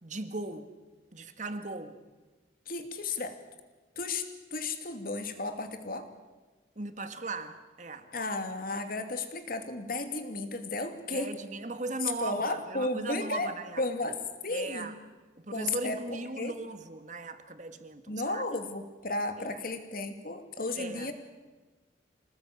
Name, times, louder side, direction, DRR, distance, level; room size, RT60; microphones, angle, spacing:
voice 1, 0.0-0.7 1.1-2.0 6.8-8.1 11.1-13.8 14.5-14.9 15.4-18.4 19.4-19.6 20.8-21.1, right 2 dB, 40° right, 8 dB, 1.8 m, -38 dB
voice 2, 2.7-3.4 4.0-6.1 8.1-11.4 12.0-13.5 13.8-14.9 15.5-16.5 18.1-21.1, left 2 dB, 50° left, 7 dB, 2.6 m, -34 dB
27.0 x 19.0 x 8.8 m, 1.3 s
head